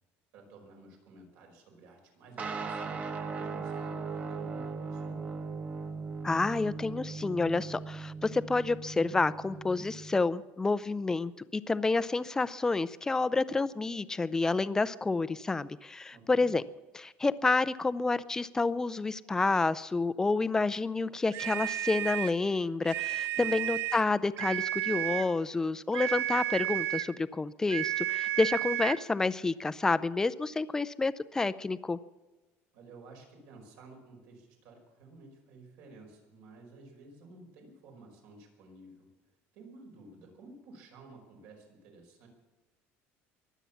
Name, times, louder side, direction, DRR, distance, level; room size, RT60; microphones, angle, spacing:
voice 1, 0.3-5.2 16.1-16.5 23.3-23.6 32.7-39.1 39.5-42.3, right 2 dB, 75° right, 2 dB, 5.1 m, -53 dB
sound 1, 2.4-10.2, right 4 dB, 30° right, 1.1 m, -38 dB
voice 2, 6.2-16.6 16.9-32.0, left 3 dB, 10° left, 16 dB, 0.4 m, -29 dB
sound 2, 21.3-22.4 22.8-24.1 24.4-25.3 25.9-27.2 27.7-29.0, right 14 dB, 55° right, 0.5 m, -32 dB
23.0 x 8.2 x 7.1 m, 1.2 s
cardioid pair, 155°, 5 cm